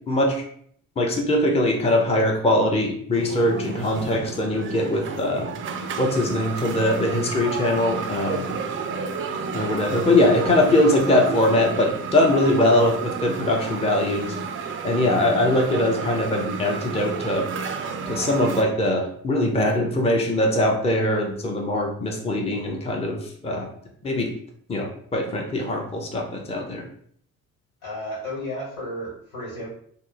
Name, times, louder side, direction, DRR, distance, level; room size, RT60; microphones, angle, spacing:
voice 1, 0.1-0.4 1.0-5.5 6.0-8.6 9.5-14.3 14.8-17.4 18.1-23.7 24.0-24.3 24.7-26.8, left 1 dB, 15° left, 1 dB, 0.6 m, -22 dB
sound 1, 3.1-18.6, right 5 dB, 30° right, 0.4 m, -31 dB
voice 2, 27.8-29.7, left 1 dB, 75° left, -5 dB, 1.5 m, -33 dB
2.6 x 2.1 x 4.0 m, 0.64 s
hypercardioid pair, 45°, 43 cm